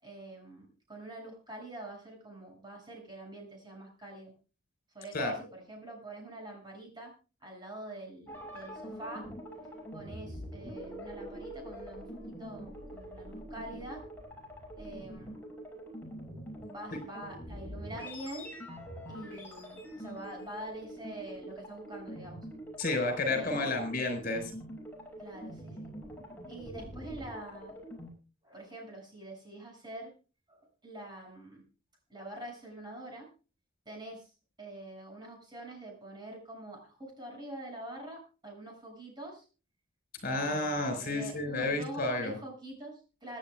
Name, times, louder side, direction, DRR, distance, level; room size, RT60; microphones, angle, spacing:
voice 1, 0.0-4.3 4.9-7.1 7.4-9.3 9.9-14.0 14.8-15.4 16.7-18.5 19.1-22.4 23.3-23.8 25.2-25.9 26.5-27.8 28.4-30.1 30.5-31.6 32.1-33.3 33.9-34.3 34.6-39.5 40.2-43.4, right 1 dB, 20° right, 1 dB, 7.2 m, -45 dB
sound 1, 8.3-28.1, equal, 10° left, 6.2 m, -45 dB
voice 2, 22.8-24.5 40.2-42.3, left 2 dB, 45° left, 6 dB, 5.2 m, -31 dB
26.0 x 10.0 x 2.4 m, 0.35 s
head